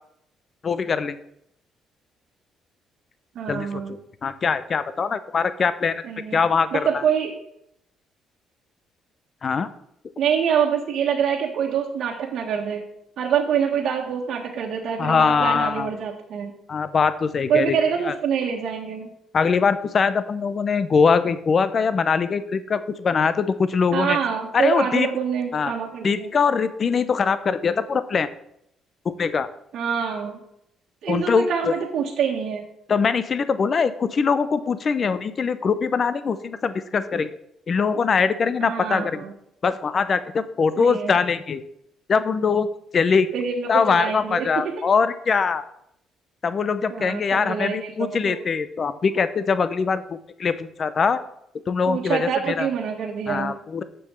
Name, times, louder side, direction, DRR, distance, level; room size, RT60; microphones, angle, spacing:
voice 1, 0.6-1.2 3.5-3.7 4.2-6.0 6.3-7.0 9.4-9.7 15.0-15.9 16.7-17.8 18.1-18.2 19.3-24.2 24.5-25.1 25.5-25.7 26.0-28.3 29.0-29.5 31.1-31.7 32.9-37.3 37.7-39.2 39.6-41.6 42.1-42.7 42.9-43.3 43.7-45.6 46.4-51.2 51.7-52.7 53.3-53.8, left 5 dB, 40° left, 13 dB, 0.7 m, -22 dB
voice 2, 3.3-4.0 6.0-6.4 6.7-7.3 10.2-12.8 13.2-16.5 17.5-19.1 23.9-26.3 29.7-30.4 31.0-32.6 38.6-39.3 40.8-41.2 43.3-44.9 46.9-48.4 51.9-53.5, right 7 dB, 65° right, -1 dB, 1.4 m, -25 dB
6.9 x 6.9 x 7.4 m, 0.76 s
cardioid pair, 120°, 0 cm